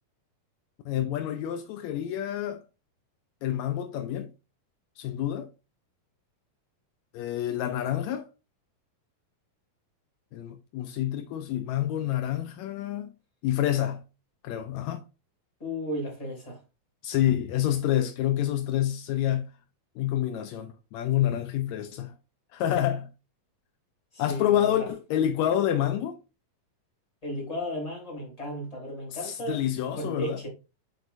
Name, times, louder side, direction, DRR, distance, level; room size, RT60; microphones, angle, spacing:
voice 1, 0.8-2.6 3.4-4.3 5.0-5.5 7.1-8.3 10.3-13.1 13.4-14.0 14.4-15.1 17.0-19.5 19.9-22.2 22.5-23.1 24.2-26.2 29.1-30.4, left 11 dB, 85° left, 1.6 m, -28 dB
voice 2, 15.6-16.6 24.1-24.9 27.2-29.6 29.9-30.5, equal, 10° left, 2.8 m, -34 dB
7.9 x 4.6 x 2.6 m
omnidirectional pair, 3.8 m